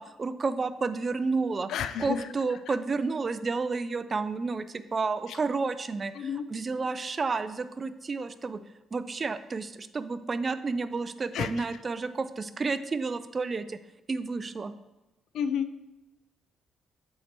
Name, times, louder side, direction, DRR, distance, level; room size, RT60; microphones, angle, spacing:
voice 1, 0.0-1.7 2.0-8.6 8.9-13.8 14.1-14.7, right 4 dB, 35° right, 13 dB, 0.4 m, -31 dB
voice 2, 1.7-2.3 2.7-2.8 6.2-6.5 11.3-11.7 15.3-15.7, left 8 dB, 75° left, 11 dB, 0.4 m, -31 dB
7.9 x 4.4 x 4.5 m, 1.0 s
cardioid pair, 90°, 0 cm